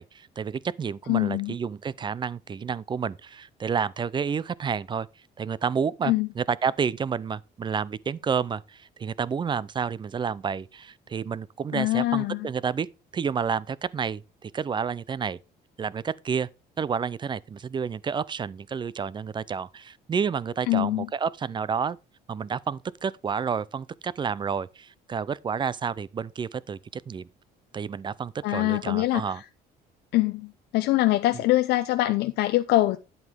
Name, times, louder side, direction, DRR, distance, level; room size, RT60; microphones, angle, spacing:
voice 1, 0.0-5.1 5.4-12.9 13.1-15.4 15.8-16.5 16.8-22.0 22.3-27.3 27.7-29.4, right 6 dB, 25° right, 0.4 m, -30 dB
voice 2, 1.1-1.5 6.0-6.3 11.7-12.5 20.7-21.1 28.4-29.4 30.1-33.0, left 17 dB, 80° left, 0.6 m, -24 dB
9.4 x 8.0 x 3.5 m
cardioid pair, 110°, 17 cm